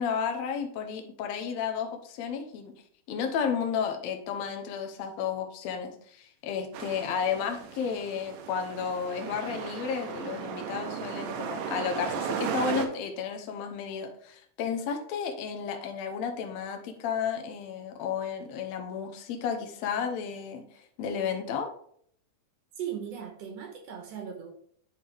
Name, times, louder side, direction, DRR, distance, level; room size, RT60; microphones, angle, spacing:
voice 1, 0.0-2.7 3.1-20.6 21.0-21.7, left 6 dB, 70° left, 1.9 m, -32 dB
sound 1, 6.7-12.9, right 7 dB, 90° right, 2.4 m, -36 dB
voice 2, 22.8-24.5, right 8 dB, 65° right, 1.8 m, -38 dB
10.5 x 3.9 x 3.3 m
omnidirectional pair, 3.7 m